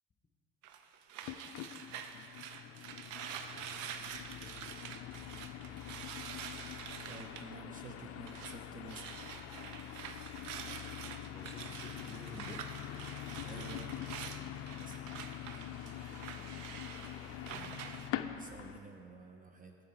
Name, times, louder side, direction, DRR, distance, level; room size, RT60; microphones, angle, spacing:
sound 1, 0.6-8.6 8.8-18.1, right 8 dB, 65° right, 0.7 m, -47 dB
sound 2, 1.2-18.8, left 11 dB, 45° left, 0.5 m, -45 dB
voice 1, 4.1-5.2 11.3-13.0 13.4-13.9, left 1 dB, 20° left, 3 dB, 0.9 m, -53 dB
voice 2, 7.1-9.1 13.4-13.9 14.8-15.4 16.4-16.5 17.2-19.8, right 4 dB, 25° right, 4 dB, 0.6 m, -52 dB
9.2 x 8.0 x 4.2 m, 2.6 s
supercardioid pair, 90°, 32 cm